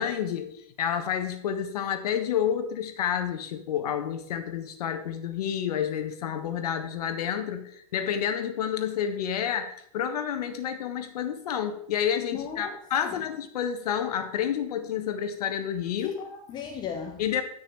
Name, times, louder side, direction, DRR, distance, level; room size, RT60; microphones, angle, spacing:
voice 1, 0.0-16.1 17.2-17.4, left 9 dB, 80° left, 7 dB, 1.4 m, -29 dB
voice 2, 12.3-13.2 16.0-17.2, left 7 dB, 20° left, 5 dB, 0.7 m, -36 dB
10.5 x 6.2 x 4.6 m, 0.69 s
supercardioid pair, 160°, 20 cm